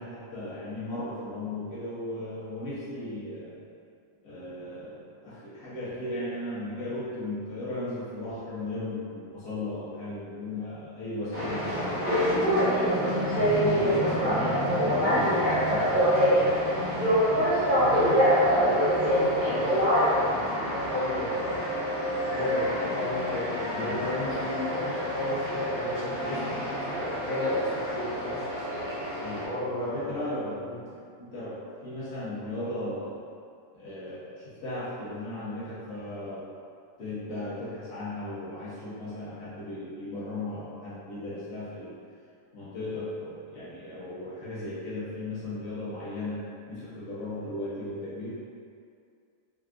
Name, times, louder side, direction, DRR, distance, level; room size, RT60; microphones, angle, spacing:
voice 1, 0.0-3.6 4.2-12.4 13.3-16.6 23.7-24.0 29.2-29.4 29.8-33.2 33.7-36.4 37.0-42.0 42.5-46.4 46.7-48.4, left 1 dB, 50° left, -11 dB, 1.1 m, -36 dB
sound 1, 11.3-29.4, equal, 10° left, 0.8 m, -26 dB
voice 2, 13.4-13.7 17.7-21.6 22.3-26.6 26.9-28.4 29.4-30.3 30.6-30.8, left 1 dB, 75° left, -11 dB, 1.5 m, -32 dB
3.4 x 2.5 x 2.4 m, 2.4 s
omnidirectional pair, 1.6 m